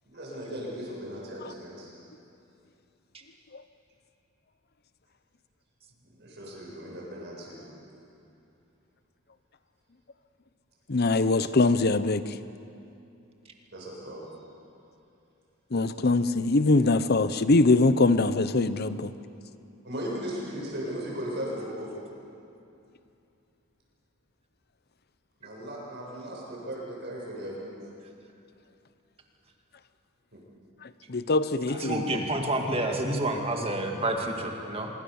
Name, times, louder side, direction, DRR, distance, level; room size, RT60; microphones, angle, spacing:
voice 1, 0.1-1.9 6.0-7.6 13.7-14.2 19.8-21.9 25.4-27.7 30.3-30.4, equal, 50° right, -4 dB, 7.6 m, -37 dB
voice 2, 10.9-12.2 15.7-19.1 31.1-32.2, left 3 dB, 45° left, 13 dB, 0.8 m, -23 dB
voice 3, 31.7-34.9, right 1 dB, 25° right, 3 dB, 2.2 m, -29 dB
24.5 x 23.0 x 7.1 m, 2.7 s
head